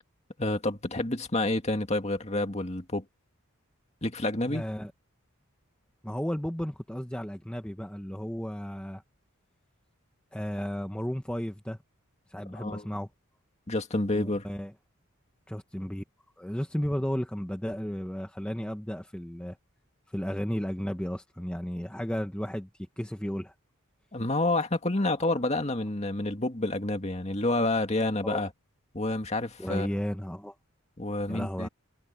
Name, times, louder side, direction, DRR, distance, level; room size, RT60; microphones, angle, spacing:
voice 1, 0.4-3.0 4.0-4.6 12.5-12.9 13.7-14.5 24.1-28.5 28.9-29.9 31.0-31.7, left 2 dB, 30° left, 2.2 m, -29 dB
voice 2, 4.5-4.9 6.0-9.0 10.3-11.8 12.3-13.1 14.1-14.7 15.5-16.0 16.4-19.6 20.1-22.7 23.0-23.5 28.2-28.4 29.6-30.5 31.3-31.7, equal, 5° left, 1.0 m, -33 dB
head